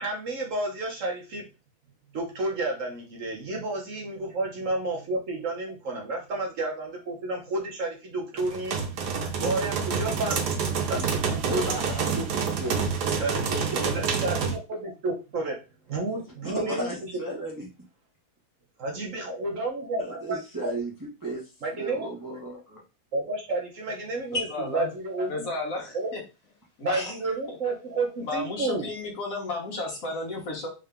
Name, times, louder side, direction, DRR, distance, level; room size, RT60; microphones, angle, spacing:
voice 1, 0.0-1.4 2.1-8.8 9.4-11.8 12.2-12.3 12.6-12.7 13.2-15.6 15.9-16.9 18.8-20.7 21.6-22.1 23.1-24.5 24.7-25.5 25.9-26.1 26.8-28.9, right 2 dB, 55° right, 0 dB, 1.2 m, -31 dB
sound 1, 8.4-14.6, right 6 dB, 90° right, 1.3 m, -28 dB
voice 2, 11.5-12.0 13.4-14.1 16.4-17.7 20.0-22.8, right 1 dB, 15° right, -4 dB, 0.9 m, -35 dB
voice 3, 24.3-24.9 25.3-26.2 26.8-27.2 27.5-27.6 28.2-30.7, left 2 dB, 60° left, 0 dB, 1.4 m, -32 dB
3.7 x 2.7 x 3.4 m, 0.30 s
omnidirectional pair, 1.7 m